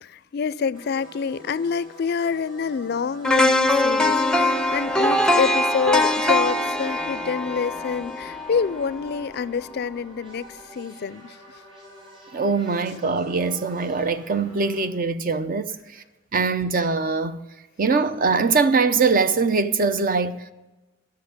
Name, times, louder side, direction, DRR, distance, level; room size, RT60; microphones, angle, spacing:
voice 1, 0.0-11.4, left 6 dB, 55° left, 0.4 m, -27 dB
sound 1, 0.7-14.9, equal, 30° right, 5.0 m, -46 dB
sound 2, 3.2-9.3 9.7-9.8, left 1 dB, 5° left, 0.5 m, -22 dB
voice 2, 12.3-15.8 16.3-17.4 17.8-20.5, right 4 dB, 45° right, 0.6 m, -22 dB
12.5 x 6.4 x 9.5 m
head